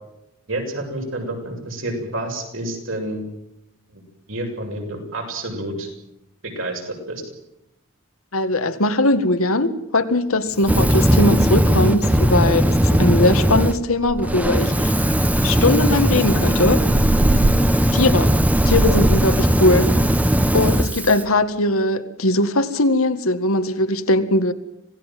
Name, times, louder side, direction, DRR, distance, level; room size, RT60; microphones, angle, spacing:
voice 1, 0.5-3.2 3.9-4.0 4.3-5.9 6.4-7.2, right 1 dB, 65° right, 2 dB, 7.2 m, -29 dB
voice 2, 8.3-14.9 15.4-16.8 17.9-18.3 18.7-20.1 20.5-24.5, left 2 dB, 80° left, 9 dB, 1.9 m, -20 dB
Fire, 10.6-13.7 14.2-21.2, equal, 5° right, 1.1 m, -18 dB
sound 1, 13.1-13.3 13.7-13.8 14.0-14.7 15.3-19.5, right 2 dB, 40° right, 0.8 m, -24 dB
26.5 x 18.0 x 7.6 m, 0.86 s
head